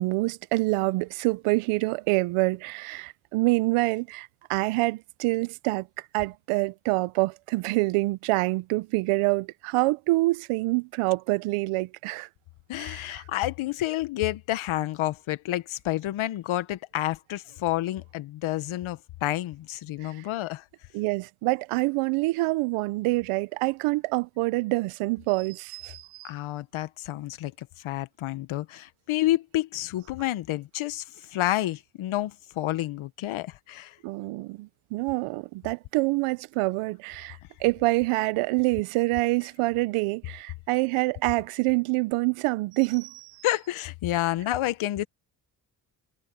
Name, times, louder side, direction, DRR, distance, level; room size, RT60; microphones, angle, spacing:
voice 1, 0.0-5.9 6.1-12.3 12.8-13.2 20.0-20.2 20.9-26.3 34.0-43.3, right 23 dB, 85° right, 0.9 m, -26 dB
voice 2, 12.7-20.6 26.2-31.0 31.3-34.0 43.4-45.0, left 15 dB, 70° left, 1.6 m, -29 dB
supercardioid pair, 55°, 50 cm